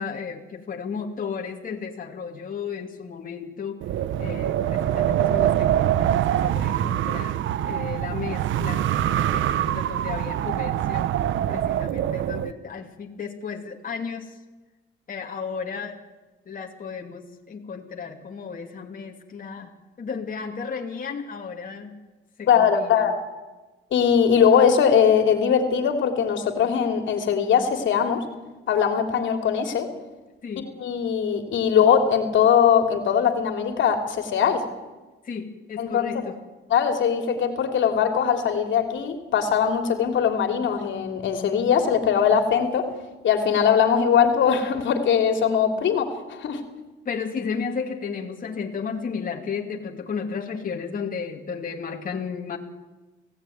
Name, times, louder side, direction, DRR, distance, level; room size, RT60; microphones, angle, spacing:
voice 1, 0.0-3.8 4.2-5.7 6.0-8.9 9.3-11.1 11.5-14.3 15.1-16.0 16.5-19.7 20.0-22.0 22.4-23.1 30.4-30.7 35.2-36.3 47.0-52.6, left 6 dB, 45° left, 1 dB, 2.9 m, -33 dB
Wind, 3.8-12.5, right 11 dB, 75° right, 0.9 m, -24 dB
voice 2, 22.5-23.2 23.9-28.2 28.7-29.9 30.8-34.6 35.8-36.3 36.7-42.9 43.2-46.6, left 7 dB, 70° left, 6 dB, 3.2 m, -21 dB
29.0 x 17.0 x 9.5 m, 1.2 s
cardioid pair, 90°, 20 cm